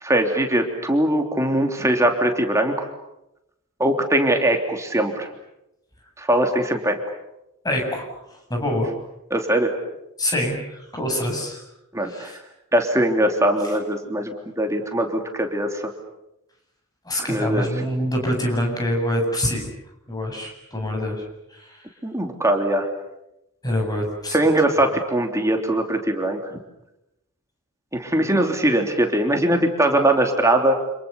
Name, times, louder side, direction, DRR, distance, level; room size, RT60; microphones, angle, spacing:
voice 1, 0.0-2.9 3.8-5.3 6.2-7.0 9.3-9.7 11.9-12.4 12.7-15.9 17.3-17.7 22.0-22.9 24.3-26.6 27.9-30.8, right 1 dB, 15° right, 4 dB, 3.1 m, -21 dB
voice 2, 7.6-8.1 8.3-8.9 10.2-11.6 12.1-12.4 13.6-13.7 17.0-19.7 20.1-21.2 21.5-21.8 23.6-24.4, left 1 dB, 20° left, 2 dB, 7.9 m, -25 dB
29.5 x 27.5 x 7.1 m, 0.86 s
head